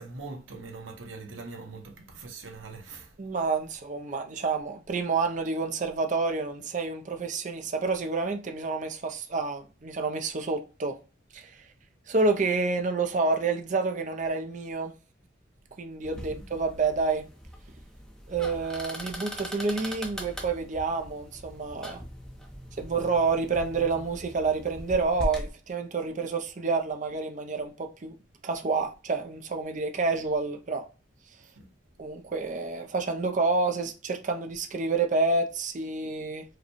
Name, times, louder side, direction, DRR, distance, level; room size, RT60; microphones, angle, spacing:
voice 1, 0.0-3.3 16.1-16.4 22.7-22.8 31.4-31.7, right 3 dB, 85° right, 0.9 m, -43 dB
voice 2, 3.2-10.9 11.3-11.5 12.1-14.9 15.8-17.2 18.3-22.0 22.8-28.1 28.4-30.8 32.0-36.4, right 4 dB, 40° right, 0.5 m, -28 dB
sound 1, 16.0-25.5, equal, 5° left, 0.6 m, -40 dB
4.8 x 2.2 x 3.0 m
head